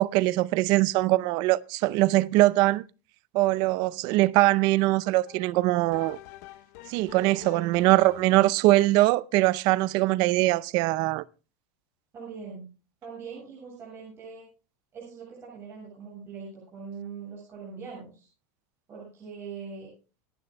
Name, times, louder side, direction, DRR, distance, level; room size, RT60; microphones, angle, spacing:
voice 1, 0.0-2.8 3.3-6.2 6.9-11.2, right 18 dB, 50° right, 0.5 m, -22 dB
sound 1, 5.3-8.6, left 15 dB, 65° left, 1.0 m, -47 dB
voice 2, 12.1-12.7 13.0-14.5 14.9-18.3 18.9-19.9, right 5 dB, 25° right, 7.9 m, -42 dB
27.5 x 10.5 x 2.2 m
supercardioid pair, 150°, 9 cm